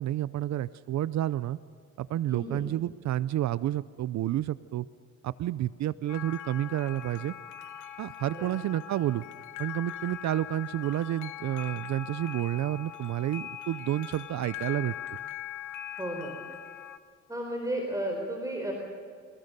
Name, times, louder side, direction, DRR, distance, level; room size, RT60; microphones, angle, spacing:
voice 1, 0.0-1.6 2.0-4.9 5.2-7.3 8.0-9.2 9.6-14.9, right 13 dB, 65° right, 17 dB, 0.6 m, -30 dB
voice 2, 2.3-2.7 8.3-8.5 16.0-16.4 17.3-18.7, right 1 dB, 10° right, 1 dB, 4.2 m, -33 dB
sound 1, 6.1-17.0, left 11 dB, 80° left, 1.2 m, -41 dB
27.5 x 18.0 x 6.7 m, 2.1 s
cardioid pair, 90°, 30 cm